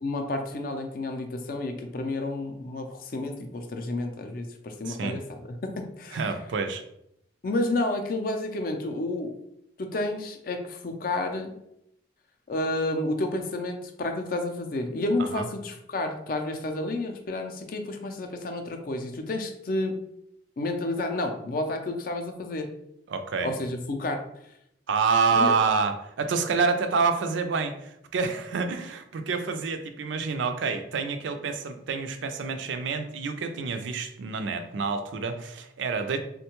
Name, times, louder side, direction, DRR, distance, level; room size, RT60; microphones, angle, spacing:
voice 1, 0.0-6.2 7.4-9.3 9.8-11.6 12.5-20.0 20.6-22.7 23.4-24.2 25.3-25.5, left 2 dB, 50° left, 5 dB, 0.4 m, -30 dB
voice 2, 4.8-5.2 6.1-6.8 15.2-15.4 23.1-23.6 24.9-36.2, right 5 dB, 75° right, 8 dB, 0.4 m, -27 dB
3.6 x 2.2 x 2.9 m, 0.77 s
head